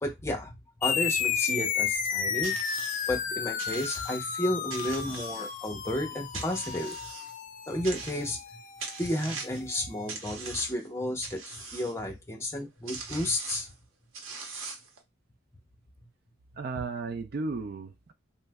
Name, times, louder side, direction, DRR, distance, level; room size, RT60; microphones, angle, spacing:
voice 1, 0.0-2.6 3.1-7.0 7.7-8.4 9.0-13.7, left 1 dB, 15° left, 0.7 m, -32 dB
Falling Comedic A, 0.8-9.7, left 8 dB, 40° left, 0.3 m, -33 dB
sound 1, 2.4-3.1 3.6-4.3 4.7-5.8 6.3-7.3 7.8-8.5 8.8-9.7 10.1-10.9 11.2-11.9 12.6-12.7 12.9-13.7 14.1-15.0, right 4 dB, 85° right, 0.8 m, -41 dB
voice 2, 16.6-18.1, right 4 dB, 50° right, 0.4 m, -34 dB
3.1 x 2.0 x 3.4 m
head